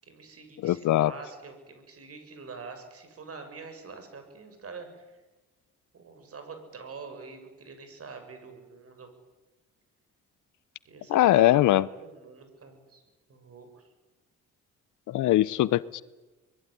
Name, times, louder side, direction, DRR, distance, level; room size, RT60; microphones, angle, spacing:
voice 1, 0.0-5.2 5.9-9.1 10.8-13.0 13.3-13.9, right 4 dB, 50° right, 7 dB, 6.9 m, -45 dB
voice 2, 0.6-1.1 11.1-11.8 15.1-16.0, left 14 dB, 75° left, 20 dB, 0.9 m, -21 dB
24.0 x 22.0 x 10.0 m, 1.2 s
cardioid pair, 90°, 30 cm